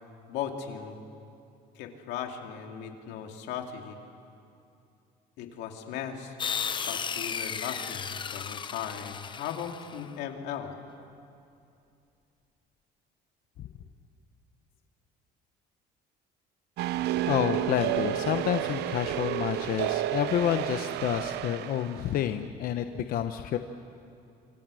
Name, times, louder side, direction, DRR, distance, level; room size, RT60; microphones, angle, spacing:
voice 1, 0.3-1.0 1.7-4.0 5.4-6.4 6.9-10.7, left 8 dB, 90° left, 3 dB, 2.5 m, -37 dB
sound 1, 6.4-10.1, left 6 dB, 25° left, 0.8 m, -34 dB
sound 2, 16.8-22.1, right 13 dB, 75° right, 0.7 m, -31 dB
voice 2, 17.3-23.6, left 10 dB, 55° left, 8 dB, 0.9 m, -29 dB
27.5 x 25.5 x 6.4 m, 2.6 s
cardioid pair, 135°, 17 cm